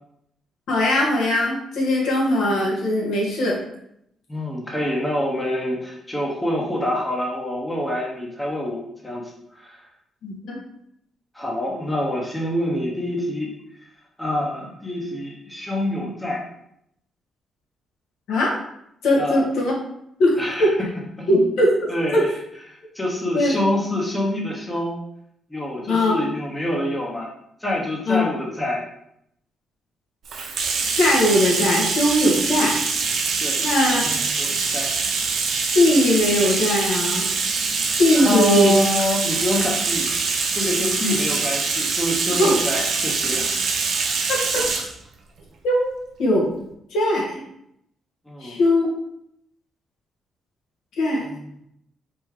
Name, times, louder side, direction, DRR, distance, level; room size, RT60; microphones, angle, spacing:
voice 1, 0.7-3.6 10.2-10.6 18.3-18.5 19.0-19.7 20.2-20.7 21.3-21.7 22.1-22.2 23.3-23.6 25.9-26.1 28.1-28.2 31.0-32.8 33.6-34.0 35.7-37.3 38.0-38.7 42.4-42.5 44.3-44.7 45.6-45.9 46.2-46.5 46.9-47.4 48.4-48.9 51.0-51.3, left 1 dB, 80° left, -2 dB, 1.3 m, -20 dB
voice 2, 4.3-9.8 11.3-13.5 14.2-16.4 19.2-19.4 20.4-20.7 21.2-21.5 21.9-22.3 22.7-25.0 25.5-27.3 27.6-28.9 33.4-33.6 33.9-34.9 38.1-43.5 44.0-44.2 48.3-48.6 51.2-51.4, left 1 dB, 10° left, -2 dB, 0.9 m, -26 dB
Bathtub (filling or washing), 30.3-44.9, right 4 dB, 65° right, 0.6 m, -24 dB
4.2 x 3.7 x 3.1 m, 0.75 s
cardioid pair, 125°, 0 cm